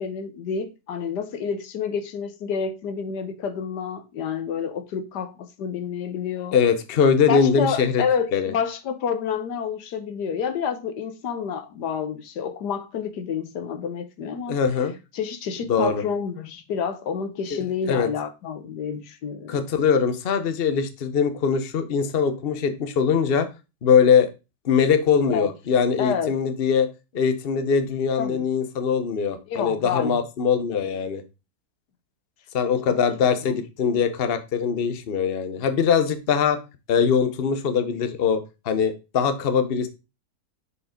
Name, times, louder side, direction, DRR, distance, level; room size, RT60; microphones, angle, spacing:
voice 1, 0.0-6.6 7.3-14.6 15.1-19.6 25.3-25.5 26.0-26.4 28.2-28.4 29.5-30.2 33.4-33.6, left 7 dB, 85° left, 1.6 m, -29 dB
voice 2, 6.5-8.0 8.3-8.5 14.5-14.9 15.7-16.0 17.5-17.6 17.9-18.1 19.5-23.5 23.8-24.3 24.6-26.9 27.1-31.2 32.5-36.6 36.9-39.9, left 6 dB, 45° left, 1.0 m, -22 dB
6.7 x 5.0 x 5.1 m
omnidirectional pair, 1.7 m